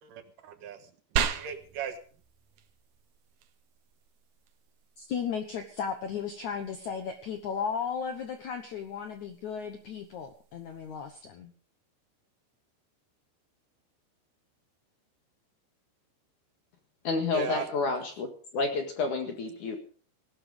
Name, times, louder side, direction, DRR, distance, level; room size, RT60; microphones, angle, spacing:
voice 1, 0.0-2.0 17.3-17.7, right 8 dB, 65° right, 8 dB, 2.4 m, -38 dB
sound 1, 1.2-11.2, right 8 dB, 90° right, 1.7 m, -40 dB
voice 2, 5.0-11.5, left 6 dB, 90° left, 7 dB, 1.6 m, -35 dB
voice 3, 17.0-18.3 18.5-19.8, left 4 dB, 55° left, 5 dB, 2.7 m, -29 dB
17.5 x 12.0 x 5.1 m, 0.43 s
omnidirectional pair, 5.3 m